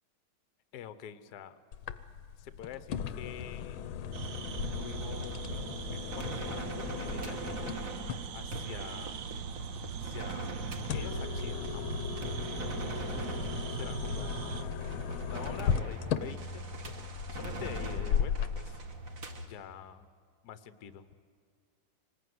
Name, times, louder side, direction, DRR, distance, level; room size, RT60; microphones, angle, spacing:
voice 1, 0.7-1.6 2.4-3.8 4.7-9.3 10.0-10.5 10.9-12.0 12.4-12.8 13.4-14.4 15.2-18.8 19.4-20.1 20.4-21.1, left 9 dB, 55° left, 11 dB, 1.3 m, -47 dB
sound 1, 1.7-18.6, left 8 dB, 75° left, 1.6 m, -37 dB
sound 2, 4.1-19.5, right 1 dB, 40° right, 1.8 m, -41 dB
sound 3, 4.1-14.6, right 9 dB, 65° right, 1.3 m, -41 dB
25.0 x 20.0 x 9.5 m, 2.1 s
omnidirectional pair, 2.4 m